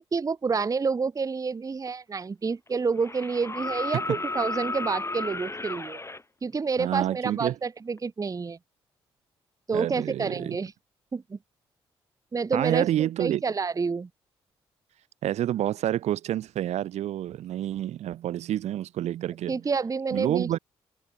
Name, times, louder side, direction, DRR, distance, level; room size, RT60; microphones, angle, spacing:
voice 1, 0.0-6.0 6.4-8.6 9.7-10.7 11.1-11.4 12.3-14.1 19.5-20.6, right 5 dB, 25° right, 0.8 m, -29 dB
sound 1, 1.9-2.0 3.0-6.2 8.0-8.1, left 2 dB, 20° left, 4.7 m, -33 dB
voice 2, 6.8-7.5 9.7-10.6 12.5-13.4 15.2-19.6 20.1-20.6, right 12 dB, 60° right, 0.9 m, -28 dB
figure-of-eight pair, 40°, 13 cm